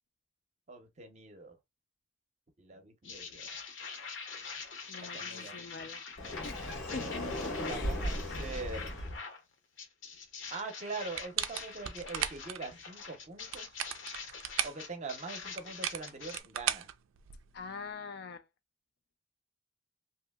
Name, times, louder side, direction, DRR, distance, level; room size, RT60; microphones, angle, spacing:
voice 1, 0.7-1.6 2.6-3.6 5.0-5.6 7.6-9.0 10.5-13.7 14.6-16.9, right 3 dB, 35° right, 0.6 m, -43 dB
sound 1, 3.0-9.4 9.8-16.4, left 5 dB, 70° left, 0.8 m, -45 dB
voice 2, 4.9-6.0 6.4-7.2 7.7-8.0 17.5-18.4, left 4 dB, 50° left, 0.3 m, -44 dB
Sliding door, 6.2-9.2, left 1 dB, 85° left, 1.3 m, -36 dB
sound 2, 11.1-12.6 13.4-14.8 15.6-17.6, right 11 dB, 80° right, 0.3 m, -36 dB
2.7 x 2.7 x 2.2 m
head